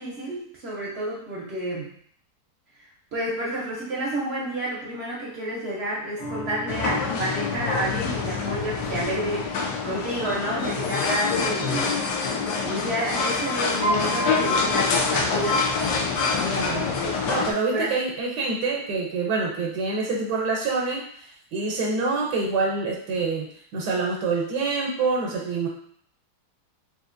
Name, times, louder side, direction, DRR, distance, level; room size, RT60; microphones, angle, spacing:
voice 1, 0.0-1.9 3.1-12.0 12.6-15.7 17.0-17.1 17.7-17.9, right 1 dB, 55° right, -5 dB, 0.7 m, -30 dB
sound 1, 6.2-12.8 13.3-13.4, equal, 60° left, 1.0 m, -44 dB
sound 2, 6.7-17.5, left 4 dB, 80° left, 1.2 m, -26 dB
Piano, 13.8-15.9, right 1 dB, 35° left, 0.7 m, -31 dB
voice 2, 16.4-25.7, right 4 dB, 80° right, -2 dB, 1.2 m, -26 dB
3.6 x 2.8 x 2.5 m, 0.62 s
omnidirectional pair, 1.8 m